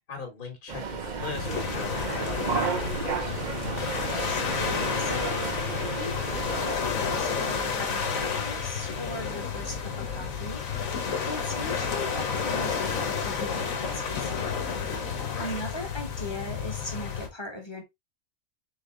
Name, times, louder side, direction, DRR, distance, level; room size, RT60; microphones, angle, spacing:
voice 1, 0.1-3.4 11.7-12.0 15.3-15.6, left 4 dB, 40° left, 1.5 m, -40 dB
sound 1, 0.7-6.8, right 6 dB, 45° right, 0.7 m, -33 dB
sound 2, 1.2-17.3, left 6 dB, 90° left, 1.4 m, -31 dB
voice 2, 4.1-5.5 5.9-10.6 11.3-14.4 15.4-17.8, left 1 dB, 20° left, 1.2 m, -39 dB
3.9 x 3.9 x 3.1 m
omnidirectional pair, 1.4 m